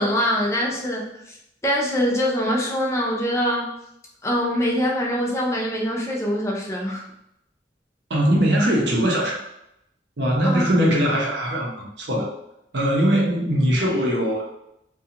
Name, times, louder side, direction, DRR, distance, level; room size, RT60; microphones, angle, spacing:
voice 1, 0.0-1.4 1.6-3.7 4.2-7.0 10.4-10.6 13.9-14.0, equal, 15° left, -2 dB, 0.4 m, -23 dB
voice 2, 8.1-9.4 10.2-12.3 12.7-14.5, equal, 75° right, -2 dB, 0.7 m, -21 dB
2.6 x 2.3 x 2.8 m, 0.79 s
head